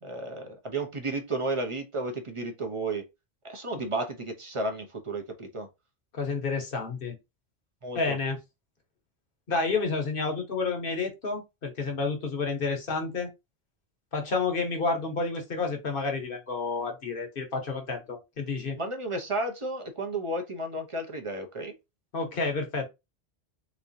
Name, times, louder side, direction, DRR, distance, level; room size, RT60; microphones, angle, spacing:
voice 1, 0.0-3.1 3.4-5.7 7.8-8.2 18.8-21.8, right 2 dB, 35° right, 0.8 m, -33 dB
voice 2, 6.1-7.1 7.9-8.4 9.5-13.3 14.1-18.8 22.1-22.8, left 4 dB, 60° left, 1.2 m, -30 dB
3.6 x 3.1 x 2.6 m
omnidirectional pair, 1.0 m